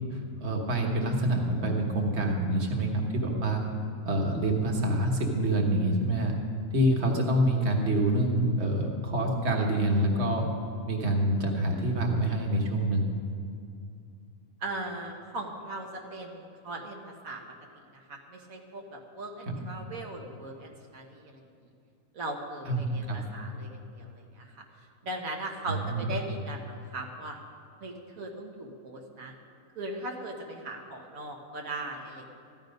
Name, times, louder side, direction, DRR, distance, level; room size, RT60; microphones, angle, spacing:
voice 1, 0.1-3.6 4.1-6.3 6.7-10.5 10.9-13.0 19.5-19.6 22.7-23.2 25.7-26.1, right 1 dB, 55° right, 1 dB, 1.7 m, -26 dB
voice 2, 14.6-17.4 17.9-21.4 22.1-24.6 25.0-27.4 27.8-29.3 29.7-32.3, right 2 dB, 85° right, 1 dB, 1.6 m, -39 dB
14.5 x 11.5 x 5.3 m, 2.5 s
omnidirectional pair, 1.4 m